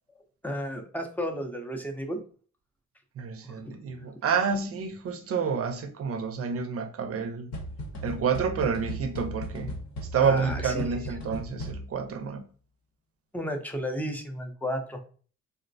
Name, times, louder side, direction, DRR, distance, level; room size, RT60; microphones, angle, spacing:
voice 1, 0.4-2.2 3.4-4.1 10.1-10.9 13.3-15.0, equal, 5° left, 0.5 m, -33 dB
voice 2, 3.2-7.5 8.0-9.8 10.1-12.4, right 6 dB, 50° right, 0.6 m, -29 dB
sound 1, 7.5-12.1, equal, 65° left, 0.9 m, -37 dB
3.8 x 2.1 x 2.6 m
cardioid pair, 90°, 30 cm